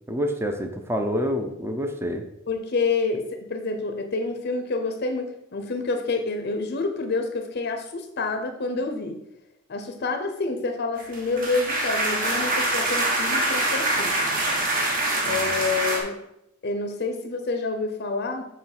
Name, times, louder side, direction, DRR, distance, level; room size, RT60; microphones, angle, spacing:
voice 1, 0.1-2.2, equal, 10° right, 5 dB, 0.5 m, -27 dB
voice 2, 2.5-9.2 9.7-14.2 15.2-16.2 16.6-18.4, left 3 dB, 50° left, 6 dB, 0.6 m, -28 dB
sound 1, 11.0-16.0, right 1 dB, 45° right, 1.4 m, -24 dB
7.1 x 3.0 x 5.8 m, 0.82 s
head